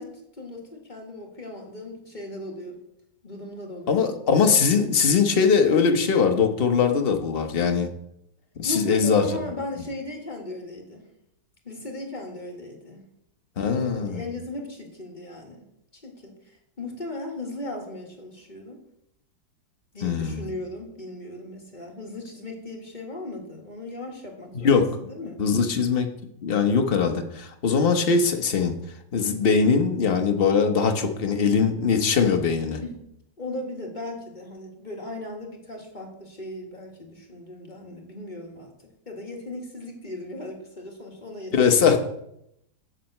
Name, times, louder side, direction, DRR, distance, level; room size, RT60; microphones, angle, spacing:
voice 1, 0.0-2.8 3.2-4.1 8.6-11.1 11.6-13.1 13.8-15.6 15.9-16.4 16.8-18.8 19.9-25.4 32.8-33.0 33.4-38.7 39.0-42.0, left 2 dB, 25° left, 0 dB, 1.6 m, -37 dB
voice 2, 3.9-7.9 8.6-9.2 13.6-14.2 20.0-20.5 24.6-24.9 25.4-26.1 26.4-28.7 29.1-32.8 41.5-42.0, left 5 dB, 40° left, 5 dB, 0.9 m, -21 dB
8.0 x 7.4 x 6.5 m, 0.79 s
omnidirectional pair, 2.1 m